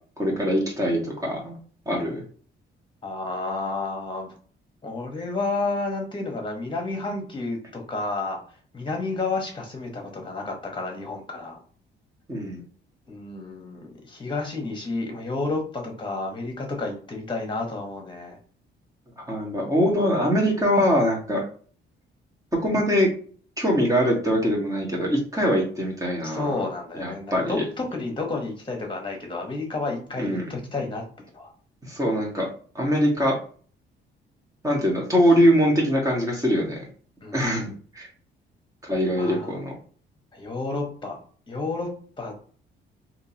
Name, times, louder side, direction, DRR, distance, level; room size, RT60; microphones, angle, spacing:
voice 1, 0.2-1.6 1.9-2.2 12.3-12.6 19.3-21.4 22.6-23.1 23.6-26.5 27.0-27.6 30.2-30.5 31.9-32.5 32.8-33.4 34.6-36.8 37.3-38.1 38.8-39.7, equal, 15° right, -2 dB, 1.7 m, -23 dB
voice 2, 3.0-4.3 4.8-8.4 8.7-11.6 13.1-18.4 26.2-31.5 37.2-37.6 39.2-39.6 40.3-41.2 41.5-41.9 42.2-42.3, left 3 dB, 25° left, 2 dB, 1.4 m, -31 dB
3.6 x 3.0 x 2.9 m, 0.44 s
cardioid pair, 90°, 20 cm